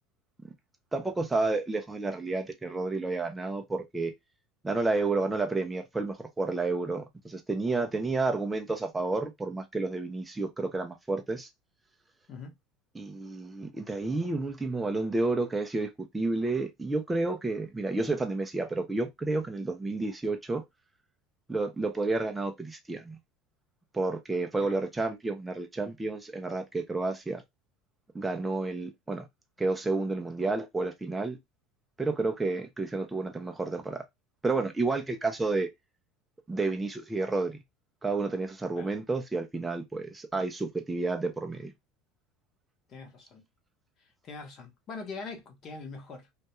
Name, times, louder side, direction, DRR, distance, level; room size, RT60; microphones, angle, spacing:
voice 1, 0.9-4.1 4.6-11.5 12.9-20.6 21.5-23.2 23.9-27.4 28.1-29.2 29.6-31.4 32.0-34.0 34.4-35.7 36.5-37.6 38.0-41.7, right 3 dB, 10° right, 0.3 m, -30 dB
voice 2, 42.9-43.4 44.2-46.3, left 4 dB, 35° left, 0.8 m, -42 dB
2.2 x 2.1 x 2.8 m
cardioid pair, 145°, 0 cm